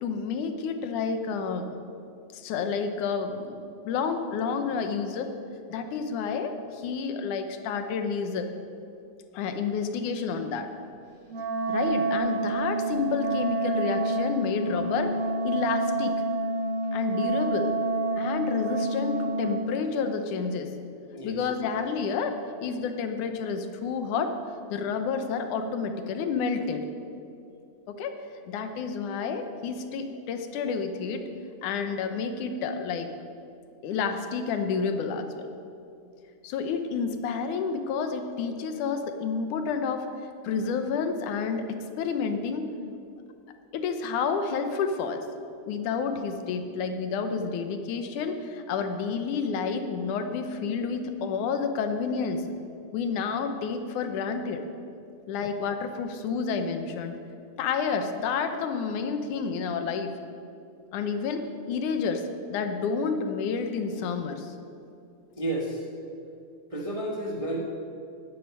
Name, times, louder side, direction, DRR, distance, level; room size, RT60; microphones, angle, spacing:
voice 1, 0.0-1.7 2.3-5.3 5.7-8.5 9.3-10.7 11.7-15.1 15.4-16.2 16.9-17.7 18.2-20.7 21.2-24.3 24.7-26.9 27.9-28.2 28.5-31.3 31.6-33.1 33.8-35.5 36.4-40.1 40.4-42.7 43.7-45.3 45.7-52.4 52.9-54.6 55.3-57.1 57.6-60.1 60.9-62.2 62.5-64.5, left 5 dB, 80° left, 7 dB, 2.4 m, -30 dB
Wind instrument woodwind instrument, 11.3-19.7, right 2 dB, 85° right, 4.6 m, -28 dB
voice 2, 65.4-65.9 66.7-67.6, right 1 dB, 30° right, -1 dB, 0.6 m, -31 dB
10.5 x 9.7 x 9.6 m, 2.6 s
omnidirectional pair, 3.5 m